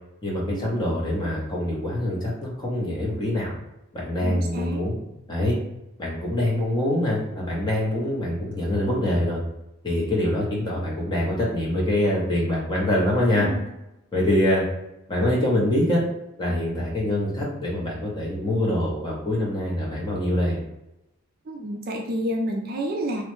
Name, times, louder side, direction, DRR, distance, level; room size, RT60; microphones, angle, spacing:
voice 1, 0.2-3.5 3.9-5.0 5.3-5.5 6.0-9.4 9.8-13.5 14.1-14.6 15.1-16.0 16.4-20.6, left 1 dB, 20° left, -4 dB, 0.7 m, -24 dB
voice 2, 4.2-4.8 13.4-13.6 21.5-23.2, right 1 dB, 40° right, 1 dB, 0.4 m, -29 dB
3.0 x 2.1 x 3.1 m, 0.90 s
head